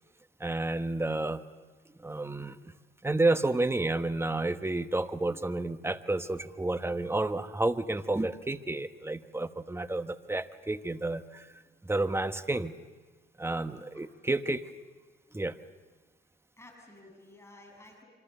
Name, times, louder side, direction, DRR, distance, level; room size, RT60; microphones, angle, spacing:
voice 1, 0.4-1.4 2.0-2.7 3.0-11.5 11.8-12.7 13.4-14.7 15.3-15.6, right 2 dB, 15° right, 10 dB, 1.1 m, -30 dB
voice 2, 16.6-18.1, left 2 dB, 15° left, 1 dB, 7.3 m, -54 dB
26.5 x 25.0 x 6.9 m, 1.4 s
cardioid pair, 75°, 19 cm